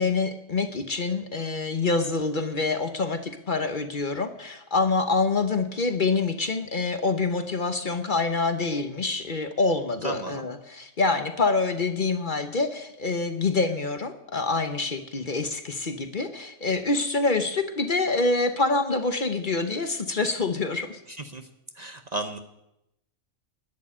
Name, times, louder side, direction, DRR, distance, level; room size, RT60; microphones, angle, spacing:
voice 1, 0.0-21.0, left 3 dB, 45° left, 8 dB, 1.0 m, -26 dB
voice 2, 10.0-10.5 21.3-21.4 21.8-22.4, right 1 dB, 35° right, 7 dB, 0.9 m, -33 dB
11.0 x 9.9 x 8.8 m, 0.87 s
omnidirectional pair, 1.3 m